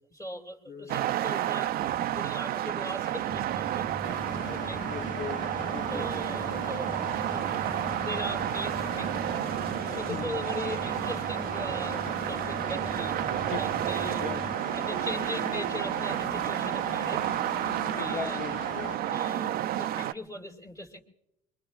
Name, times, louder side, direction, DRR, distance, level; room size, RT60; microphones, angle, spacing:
voice 1, 0.1-3.9 4.5-4.8 5.8-9.2 9.9-14.2 14.7-17.3 17.9-18.4 19.1-21.0, left 1 dB, 20° left, 2.4 m, -40 dB
voice 2, 0.7-1.0 4.9-6.1 10.1-10.4 13.5-13.8 14.2-14.5 18.0-19.0, left 6 dB, 70° left, 0.8 m, -39 dB
sound 1, 0.9-20.1, right 12 dB, 65° right, 0.5 m, -31 dB
sound 2, 3.3-14.6, right 1 dB, 5° right, 0.5 m, -43 dB
Engine, 4.0-18.9, left 5 dB, 50° left, 1.2 m, -41 dB
24.0 x 22.5 x 2.4 m
cardioid pair, 110°, 17 cm